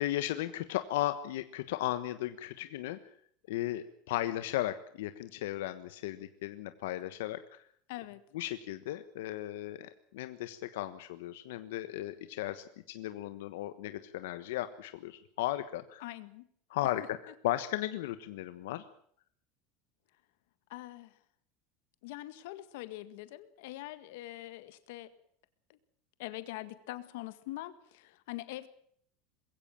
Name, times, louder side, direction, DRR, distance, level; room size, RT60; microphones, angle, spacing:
voice 1, 0.0-3.0 3.5-7.6 8.3-16.0 16.7-17.0 17.4-18.8, left 14 dB, 85° left, 11 dB, 1.3 m, -36 dB
voice 2, 7.9-8.2 16.0-16.4 20.7-21.2 22.0-25.1 25.7-25.8 26.2-28.7, left 16 dB, 65° left, 13 dB, 1.8 m, -43 dB
21.5 x 16.5 x 8.9 m, 0.63 s
supercardioid pair, 175°, 0 cm